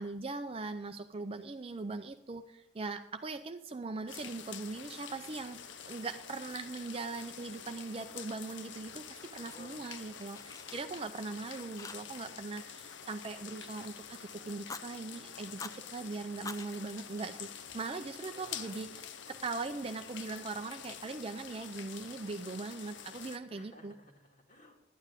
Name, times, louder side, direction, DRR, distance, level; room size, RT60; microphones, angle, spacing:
voice 1, 0.0-5.6 5.9-13.9 14.2-17.5 17.7-23.9, right 3 dB, 30° right, 7 dB, 0.5 m, -40 dB
sound 1, 4.1-23.4, left 8 dB, 75° left, 0.7 m, -47 dB
Fire, 8.8-9.9 10.1-11.4 11.8-12.3 12.6-14.0 14.5-14.9 15.4-15.8 16.3-17.9, left 4 dB, 20° left, 0.5 m, -49 dB
voice 2, 9.4-9.8 18.3-18.9 23.5-24.8, equal, 40° left, 1 dB, 2.2 m, -55 dB
12.0 x 9.5 x 5.1 m, 0.80 s
head